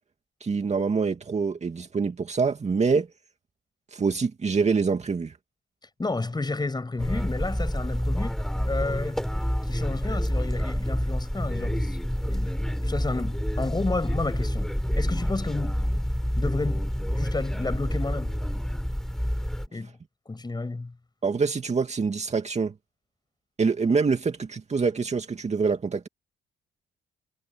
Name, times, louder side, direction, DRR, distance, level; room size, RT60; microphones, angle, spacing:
voice 1, 0.4-3.1 3.9-5.3 21.2-22.7 23.6-26.1, right 5 dB, 35° right, 2.4 m, -25 dB
voice 2, 6.0-8.4 8.7-9.2 9.6-12.5 12.8-14.7 14.9-15.8 16.4-16.9 17.2-18.4 19.7-19.9 20.3-20.9, left 3 dB, 20° left, 6.9 m, -31 dB
sound 1, 7.0-19.7, equal, ahead, 5.7 m, -28 dB
cardioid pair, 90°, 20 cm